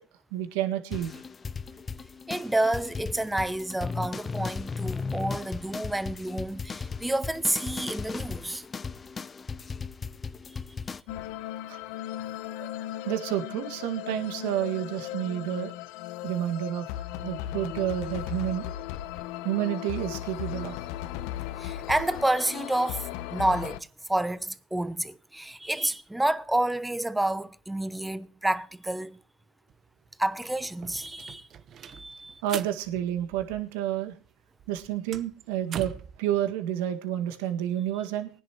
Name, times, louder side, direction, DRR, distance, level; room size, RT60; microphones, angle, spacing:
voice 1, 0.3-1.2 11.7-11.8 12.6-12.7 13.1-15.7 16.2-16.9 17.2-18.7 19.4-20.8 32.4-34.2 34.7-35.9 36.2-38.3, right 11 dB, 75° right, 1.8 m, -30 dB
sound 1, 0.9-11.0, left 5 dB, 25° left, 0.6 m, -36 dB
voice 2, 2.3-8.6 21.6-29.2 30.2-31.5 31.8-32.4, right 1 dB, 5° right, 0.8 m, -29 dB
sound 2, 11.1-23.8, left 13 dB, 70° left, 0.8 m, -37 dB
sound 3, 29.7-29.8 30.1-34.0 34.3-36.2, right 8 dB, 45° right, 0.9 m, -42 dB
19.5 x 10.0 x 3.0 m
supercardioid pair, 95°, 0 cm